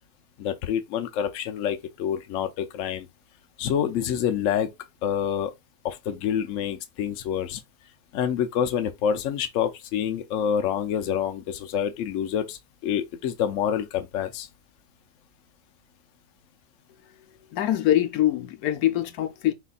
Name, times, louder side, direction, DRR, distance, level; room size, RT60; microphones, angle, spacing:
voice 1, 0.4-3.1 3.6-4.7 5.0-5.5 5.8-7.6 8.1-14.5, left 9 dB, 65° left, 0.9 m, -27 dB
voice 2, 17.5-19.5, left 12 dB, 85° left, 1.1 m, -23 dB
4.3 x 4.0 x 2.4 m
omnidirectional pair, 1.5 m